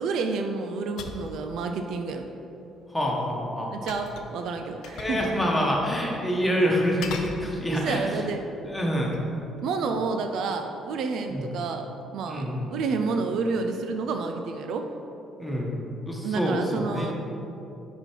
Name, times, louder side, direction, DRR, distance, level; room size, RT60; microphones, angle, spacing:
voice 1, 0.0-2.3 3.7-5.2 7.7-8.4 9.6-11.9 12.1-14.9 16.2-17.1, right 4 dB, 70° right, 5 dB, 0.4 m, -29 dB
sound 1, 1.0-1.3 3.9-4.4 4.8-5.4 5.7-5.8 7.0-7.9 8.5-9.3, left 5 dB, 75° left, 0.4 m, -39 dB
voice 2, 2.9-3.9 4.9-8.1 8.7-9.2 11.3-11.5 12.3-12.7 15.4-17.1, equal, 10° left, -2 dB, 1.2 m, -27 dB
5.2 x 4.2 x 4.5 m, 2.9 s
supercardioid pair, 70°, 0 cm